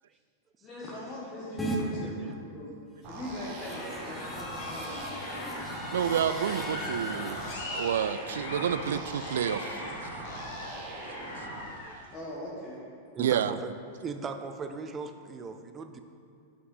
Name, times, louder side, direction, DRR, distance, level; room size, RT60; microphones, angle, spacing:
voice 1, 0.6-2.7 3.0-5.7 12.1-12.8, left 1 dB, 30° left, -6 dB, 1.5 m, -41 dB
sound 1, 1.6-1.8 3.2-7.5, right 1 dB, 10° left, 1.0 m, -39 dB
sound 2, 3.0-11.6, right 2 dB, 50° right, 1.4 m, -41 dB
sound 3, 3.5-12.1, left 2 dB, 60° left, 1.3 m, -41 dB
voice 2, 5.9-7.4 7.7-10.2 13.2-13.6, right 8 dB, 65° right, 13 dB, 0.3 m, -29 dB
voice 3, 13.1-13.7 14.0-16.0, right 5 dB, 25° right, 7 dB, 0.6 m, -38 dB
6.0 x 5.9 x 5.5 m, 2.4 s
figure-of-eight pair, 95°, 0 cm